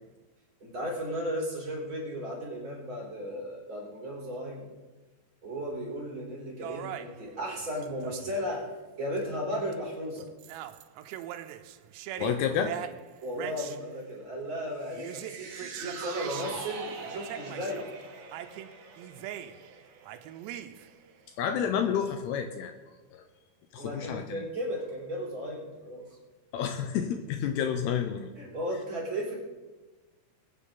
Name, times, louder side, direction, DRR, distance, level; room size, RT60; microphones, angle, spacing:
voice 1, 0.6-4.7 5.4-8.7 9.0-10.3 13.2-17.8 23.8-26.2 28.4-29.4, equal, 30° right, -5 dB, 4.2 m, -35 dB
sound 1, 6.6-8.5 9.2-9.3 9.7-9.9 10.2-13.8 14.9-16.6 17.0-17.9 18.3-19.8 20.0-21.0, right 11 dB, 85° right, 2.8 m, -41 dB
voice 2, 12.2-12.7 21.4-22.7 23.1-23.3 23.7-24.4 26.5-28.3, left 8 dB, 80° left, 6 dB, 2.6 m, -30 dB
sound 2, 14.8-21.2 21.6-21.7, right 5 dB, 60° right, 2.2 m, -44 dB
21.0 x 9.8 x 3.9 m, 1.2 s
omnidirectional pair, 5.0 m